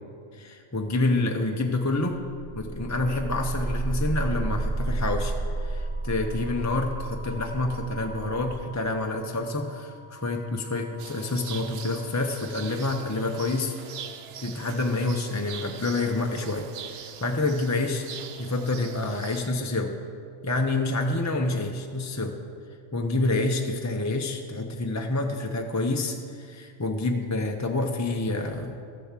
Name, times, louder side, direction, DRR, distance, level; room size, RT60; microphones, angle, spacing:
voice 1, 0.3-2.2 2.6-13.7 14.4-18.1 18.4-19.9 20.4-22.4 22.9-28.8, left 2 dB, 20° left, 3 dB, 0.5 m, -28 dB
sound 1, 2.3-11.9, right 2 dB, 30° right, 1.1 m, -33 dB
sound 2, 11.0-19.5, right 8 dB, 65° right, 0.8 m, -42 dB
13.0 x 7.1 x 7.4 m, 2.3 s
omnidirectional pair, 1.2 m